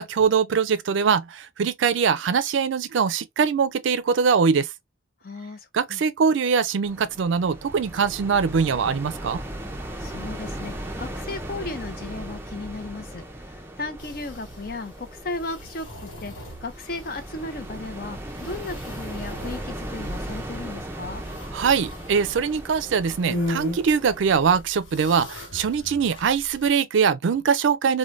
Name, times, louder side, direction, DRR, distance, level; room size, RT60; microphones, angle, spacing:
voice 1, 0.0-4.7 5.7-9.4 21.5-28.0, right 6 dB, 75° right, 0.4 m, -22 dB
voice 2, 5.2-6.0 10.0-21.2, left 2 dB, 50° left, 0.5 m, -35 dB
sound 1, 6.8-24.6, right 1 dB, 10° right, 0.4 m, -37 dB
sound 2, 14.0-26.7, left 1 dB, 80° left, 1.0 m, -38 dB
3.2 x 2.2 x 2.5 m
head